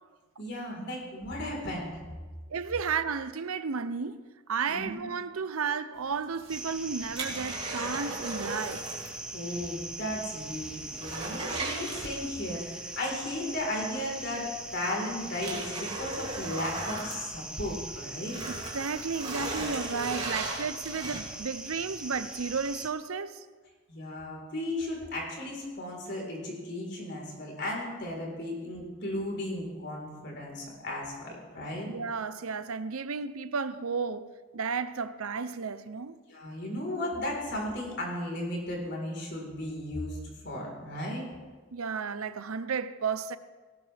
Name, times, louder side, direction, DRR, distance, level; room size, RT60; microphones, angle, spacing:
voice 1, 0.4-2.0 4.7-5.0 9.3-14.4 14.7-18.4 23.9-31.9 36.3-41.3, left 1 dB, 55° left, 4.2 m, -35 dB
voice 2, 2.5-8.8 18.7-23.4 31.9-34.3 34.5-36.2 41.7-43.4, right 5 dB, 85° right, 0.7 m, -33 dB
sound 1, 6.2-9.2 9.5-9.6 10.1-10.2 10.5-12.6 14.0-14.1 14.7-17.8 18.2-21.5 22.0-22.1, right 2 dB, 30° right, 2.8 m, -37 dB
sound 2, 6.5-22.9, right 2 dB, 5° right, 1.1 m, -41 dB
18.5 x 18.0 x 3.5 m
head